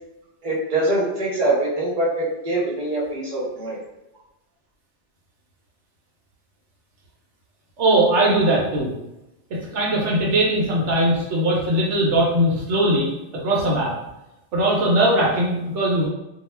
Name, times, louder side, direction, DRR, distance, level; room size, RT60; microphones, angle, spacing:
voice 1, 0.4-3.8, right 2 dB, 40° right, -5 dB, 0.8 m, -23 dB
voice 2, 7.8-8.9 9.5-13.9 14.5-16.1, right 1 dB, 80° right, -4 dB, 0.9 m, -20 dB
2.3 x 2.1 x 3.1 m, 0.93 s
omnidirectional pair, 1.2 m